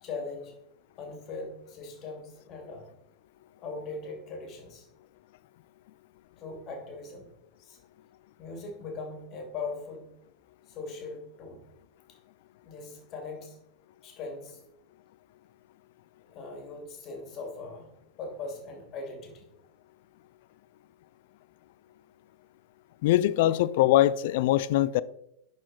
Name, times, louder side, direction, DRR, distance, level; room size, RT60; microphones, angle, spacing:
voice 1, 0.0-0.6 1.0-2.9 3.6-4.9 6.4-7.3 7.6-7.8 8.4-10.1 10.7-11.6 12.6-13.6 14.0-14.6 16.3-17.9 18.2-19.5 23.5-23.6, left 3 dB, 35° left, 2.7 m, -40 dB
voice 2, 23.0-25.0, left 14 dB, 55° left, 0.4 m, -22 dB
11.0 x 4.9 x 4.2 m
figure-of-eight pair, 90°, 0 cm